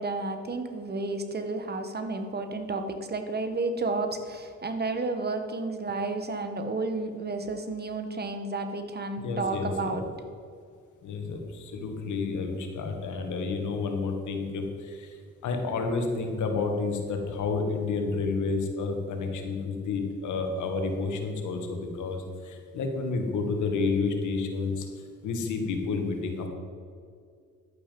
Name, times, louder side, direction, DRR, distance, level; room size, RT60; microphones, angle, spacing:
voice 1, 0.0-10.0, right 3 dB, 35° right, 7 dB, 1.4 m, -31 dB
voice 2, 9.2-10.0 11.0-15.2 15.4-24.9 25.2-26.5, left 4 dB, 75° left, 4 dB, 1.9 m, -30 dB
11.5 x 8.7 x 5.4 m, 2.2 s
cardioid pair, 90°, 30 cm